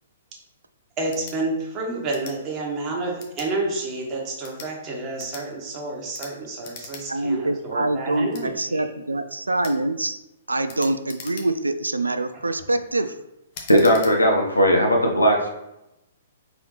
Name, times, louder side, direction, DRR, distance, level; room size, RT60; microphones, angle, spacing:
voice 1, 1.0-8.8, right 2 dB, 30° right, -1 dB, 1.3 m, -29 dB
sound 1, 1.1-1.4 2.1-2.4 3.2-3.5 4.3-4.7 5.2-5.5 6.1-6.3 6.6-7.0 7.4-7.5 8.3-8.5 9.6-9.8 10.7-11.7 12.3-12.6 13.5-14.1, left 5 dB, 40° left, 0.9 m, -41 dB
voice 2, 7.1-10.2 10.5-13.2, right 2 dB, 85° right, 10 dB, 0.3 m, -25 dB
voice 3, 13.7-15.5, equal, 85° left, 1 dB, 1.0 m, -17 dB
4.1 x 3.6 x 3.2 m, 0.89 s
figure-of-eight pair, 115°, 0 cm